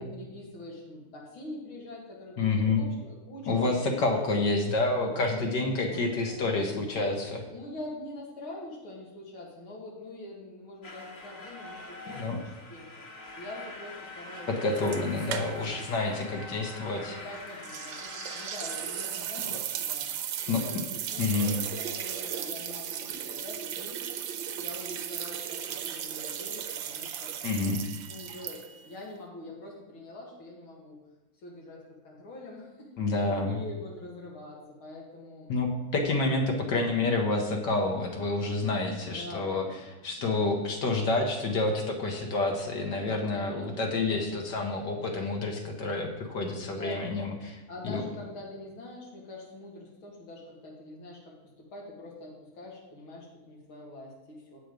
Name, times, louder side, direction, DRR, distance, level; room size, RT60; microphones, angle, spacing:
voice 1, 0.0-4.2 5.9-12.9 13.4-14.5 16.0-16.3 17.0-20.1 20.5-24.0 24.6-27.3 28.1-31.0 31.4-35.5 39.0-40.5 43.3-43.7 44.0-44.3 46.7-47.1 47.7-54.6, left 2 dB, 85° left, -2 dB, 2.7 m, -44 dB
voice 2, 2.4-2.8 3.5-7.4 12.1-12.4 14.5-17.2 19.5-19.6 20.5-20.6 21.2-21.5 27.4-27.8 33.0-33.6 35.5-39.7 40.0-47.6 47.8-48.0, left 3 dB, 60° left, 2 dB, 1.7 m, -28 dB
sound 1, 10.8-19.1, left 2 dB, 45° left, 1.6 m, -44 dB
sound 2, 14.7-15.9 16.1-16.2 17.6-28.9, right 9 dB, 75° right, 1.4 m, -36 dB
8.0 x 7.8 x 5.1 m, 1.1 s
omnidirectional pair, 2.2 m